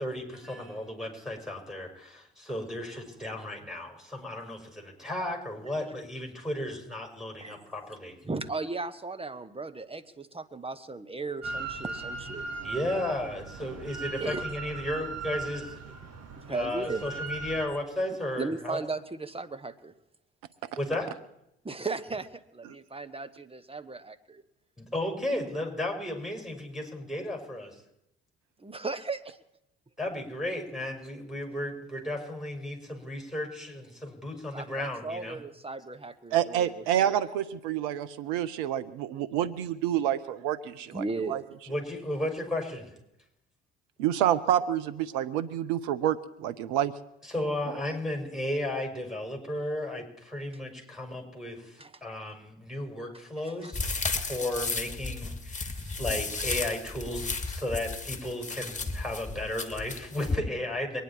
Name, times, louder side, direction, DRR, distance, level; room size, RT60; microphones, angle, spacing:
voice 1, 0.0-8.2 12.6-15.9 16.5-18.8 20.8-21.1 24.8-27.7 30.0-35.4 41.7-42.9 47.3-53.9 54.2-61.0, left 1 dB, ahead, 2 dB, 6.2 m, -34 dB
voice 2, 8.2-12.4 14.2-14.4 16.4-17.0 18.4-19.9 21.6-22.3 22.5-24.4 28.6-29.3 34.5-37.1 40.9-41.4 51.8-51.9 53.6-53.7, right 3 dB, 20° right, 10 dB, 1.4 m, -36 dB
Drill, 11.4-17.7, right 3 dB, 55° right, 2.1 m, -38 dB
voice 3, 36.3-41.4 44.0-46.9, right 11 dB, 80° right, 13 dB, 0.7 m, -28 dB
sound 1, 53.7-60.4, left 3 dB, 25° left, 2.0 m, -33 dB
23.5 x 10.5 x 4.6 m, 0.82 s
hypercardioid pair, 55°, 30 cm